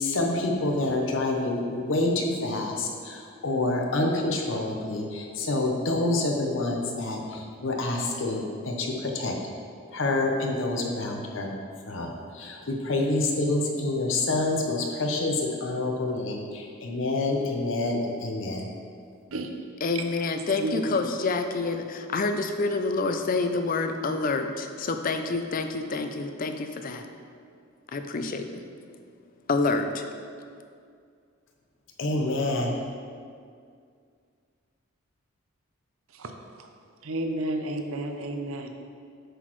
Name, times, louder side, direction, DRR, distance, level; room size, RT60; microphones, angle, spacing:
voice 1, 0.0-9.4 9.9-11.6 11.9-18.7 32.0-32.8, left 2 dB, 65° left, 2 dB, 0.8 m, -27 dB
voice 2, 19.8-27.1 27.9-28.6 29.5-30.0, left 3 dB, 40° left, 7 dB, 0.4 m, -28 dB
voice 3, 20.6-21.0 36.2-36.3 37.0-38.7, right 1 dB, 85° right, 5 dB, 0.7 m, -31 dB
7.9 x 6.1 x 3.1 m, 2.2 s
head